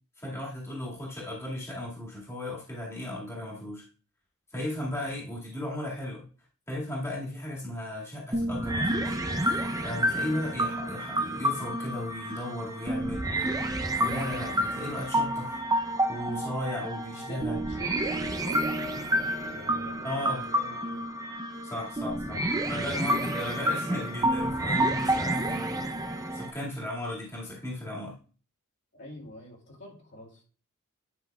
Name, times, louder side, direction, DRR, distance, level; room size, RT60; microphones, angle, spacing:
voice 1, 0.2-3.8 4.5-6.2 6.7-9.2 9.8-15.6 16.1-17.6 20.0-20.5 21.6-28.1, left 1 dB, 10° left, -5 dB, 2.0 m, -36 dB
sound 1, 8.3-26.5, right 1 dB, 15° right, 0.6 m, -29 dB
voice 2, 17.1-21.0 21.6-21.9 28.9-30.4, left 1 dB, 50° left, -2 dB, 2.4 m, -46 dB
10.5 x 5.7 x 2.3 m, 0.38 s
head